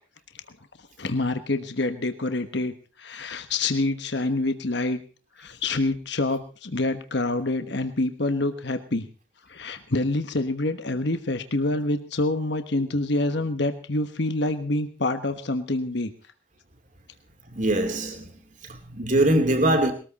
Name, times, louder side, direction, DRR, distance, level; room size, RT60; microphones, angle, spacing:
voice 1, 1.0-2.7 3.0-5.0 5.4-9.0 9.5-16.1, left 2 dB, 55° left, 1.3 m, -26 dB
voice 2, 17.5-18.3 18.7-19.9, right 1 dB, 40° right, 2.8 m, -22 dB
20.5 x 14.0 x 4.2 m
head